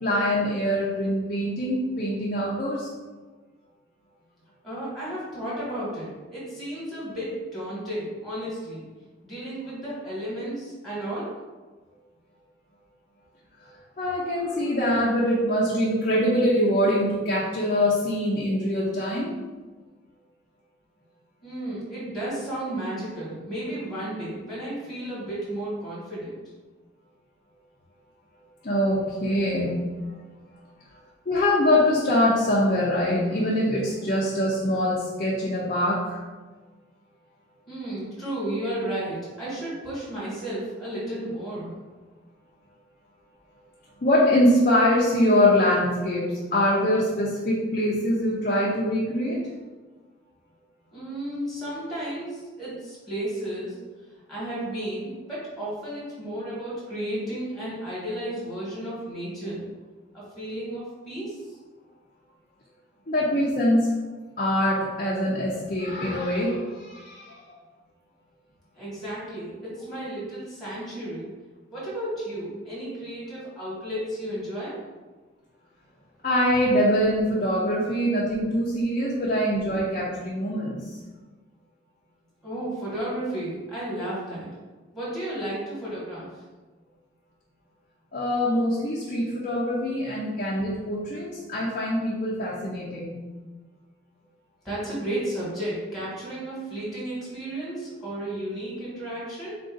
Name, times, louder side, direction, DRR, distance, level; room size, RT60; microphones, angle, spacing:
voice 1, 0.0-2.9 13.6-13.7 14.0-19.3 28.6-29.9 31.3-36.2 44.0-49.4 63.1-63.9 64.4-67.4 76.2-81.0 88.1-93.2, left 1 dB, 40° left, -6 dB, 0.6 m, -23 dB
voice 2, 4.6-8.8 9.2-11.3 21.4-26.4 37.7-41.7 50.9-53.7 54.3-59.6 60.1-61.5 68.7-71.3 71.7-74.8 82.4-84.5 84.9-86.3 94.6-99.6, right 1 dB, ahead, -8 dB, 1.4 m, -33 dB
3.8 x 2.6 x 3.8 m, 1.3 s
head